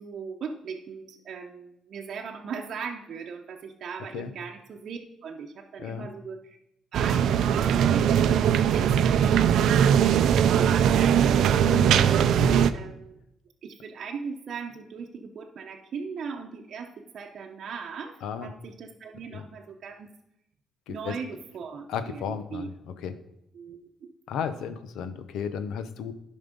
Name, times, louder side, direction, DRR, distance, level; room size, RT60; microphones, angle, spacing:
voice 1, 0.0-6.6 6.9-11.5 11.9-13.2 13.6-20.1 20.9-22.7 23.5-24.1, right 5 dB, 60° right, 1 dB, 0.8 m, -39 dB
sound 1, 6.9-12.7, right 8 dB, 75° right, 0.5 m, -20 dB
voice 2, 11.6-12.7 18.2-18.5 19.3-19.4 20.9-21.0 21.9-22.7 23.0-23.1 24.3-26.1, left 7 dB, 85° left, 11 dB, 0.8 m, -34 dB
11.0 x 5.4 x 5.3 m, 0.81 s
cardioid pair, 90°, 0 cm